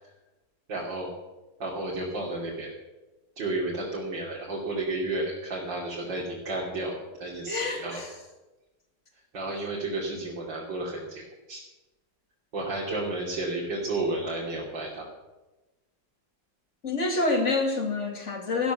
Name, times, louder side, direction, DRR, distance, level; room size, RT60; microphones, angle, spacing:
voice 1, 0.7-1.1 1.6-2.7 3.4-8.0 9.3-11.6 12.5-15.1, right 2 dB, 85° right, -4 dB, 3.4 m, -32 dB
voice 2, 7.5-8.1 16.8-18.7, left 3 dB, 40° left, 4 dB, 2.6 m, -27 dB
15.5 x 12.0 x 7.0 m, 1.1 s
omnidirectional pair, 1.9 m